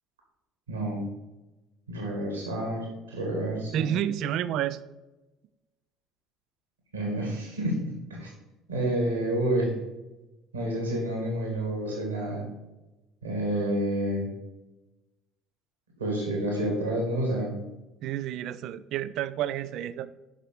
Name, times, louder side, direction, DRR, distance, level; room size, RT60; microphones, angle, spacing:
voice 1, 0.7-1.1 1.9-3.9 6.9-8.3 8.7-9.7 10.5-12.4 13.2-14.3 16.0-17.6, right 1 dB, 80° right, 0 dB, 1.9 m, -29 dB
voice 2, 3.7-4.8 18.0-20.1, right 11 dB, 55° right, 15 dB, 0.4 m, -30 dB
7.3 x 5.8 x 4.7 m, 1.0 s
figure-of-eight pair, 55°, 0 cm